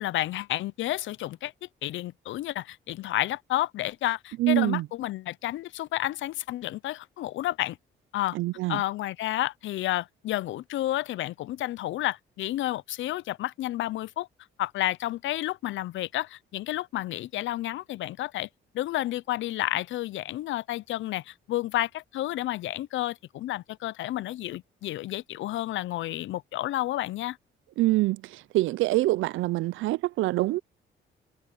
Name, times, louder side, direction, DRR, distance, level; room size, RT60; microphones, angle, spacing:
voice 1, 0.0-1.5 1.8-7.8 8.1-8.4 8.7-14.3 14.6-18.5 18.7-27.4, left 15 dB, 75° left, 0.6 m, -31 dB
voice 2, 4.4-4.9 8.3-8.8 27.8-30.6, right 17 dB, 80° right, 0.4 m, -25 dB
cardioid pair, 90°, 20 cm